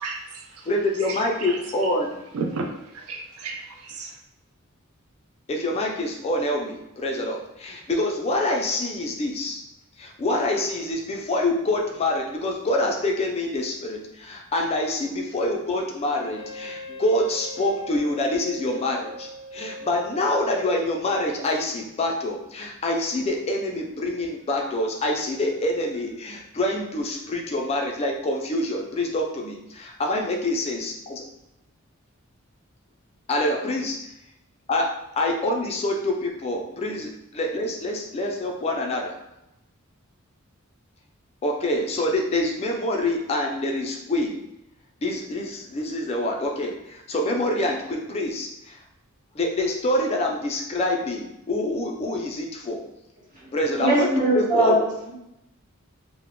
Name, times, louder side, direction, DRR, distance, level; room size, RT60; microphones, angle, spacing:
voice 1, 0.0-0.7 1.0-1.9 2.3-4.2, right 4 dB, 85° right, 2 dB, 0.4 m, -34 dB
voice 2, 0.7-2.2 5.5-9.6 10.0-31.2 33.3-34.0 34.7-39.2 41.4-44.4 45.0-48.8 49.3-52.8 53.5-54.9, left 1 dB, 30° left, 1 dB, 0.3 m, -26 dB
Wind instrument woodwind instrument, 16.2-21.2, left 1 dB, 15° right, 1.1 m, -40 dB
voice 3, 53.8-55.1, right 1 dB, 40° right, -7 dB, 1.0 m, -21 dB
2.2 x 2.0 x 3.5 m, 0.88 s
head